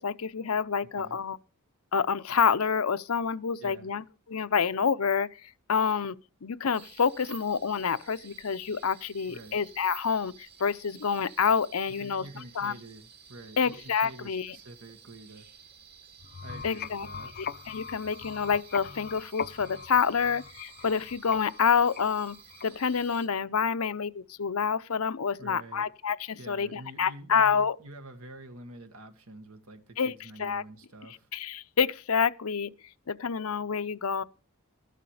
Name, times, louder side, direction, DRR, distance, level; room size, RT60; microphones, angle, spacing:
voice 1, 0.0-1.4 1.9-5.4 5.7-6.1 6.4-12.2 12.6-12.7 13.6-14.6 16.6-17.1 17.7-22.4 22.6-27.8 30.0-30.1 30.4-30.6 31.3-32.7 33.1-34.2, left 6 dB, 85° left, 0.7 m, -28 dB
voice 2, 3.6-3.9 9.3-9.6 12.0-15.5 16.4-17.3 25.4-25.8 26.4-31.3, right 2 dB, 80° right, 1.8 m, -47 dB
sound 1, 6.7-23.3, right 7 dB, 50° right, 2.2 m, -53 dB
sound 2, 16.2-23.0, left 7 dB, 45° left, 0.5 m, -42 dB
13.5 x 11.0 x 5.0 m
head